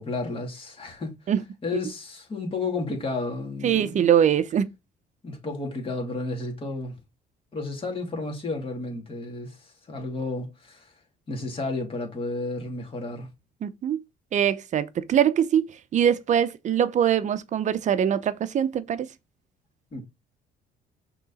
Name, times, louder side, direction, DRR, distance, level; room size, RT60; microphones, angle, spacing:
voice 1, 0.0-1.1 1.6-3.9 5.2-6.9 7.5-10.9 11.3-13.3 19.9-20.1, left 3 dB, 35° left, 2.8 m, -32 dB
voice 2, 3.6-4.7 13.6-14.0 14.3-19.1, right 9 dB, 45° right, 0.7 m, -23 dB
6.0 x 3.8 x 4.1 m
cardioid pair, 110°, 17 cm